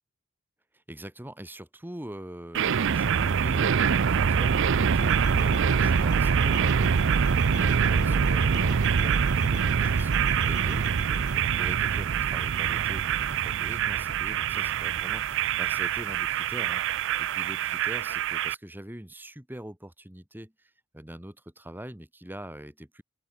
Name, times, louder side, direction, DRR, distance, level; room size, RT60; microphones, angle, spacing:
voice 1, 0.7-23.0, right 1 dB, 10° right, 1.8 m, -43 dB
sound 1, 2.5-18.5, right 7 dB, 60° right, 0.5 m, -25 dB
sound 2, 5.1-11.4, left 3 dB, 55° left, 2.0 m, -42 dB
open air
head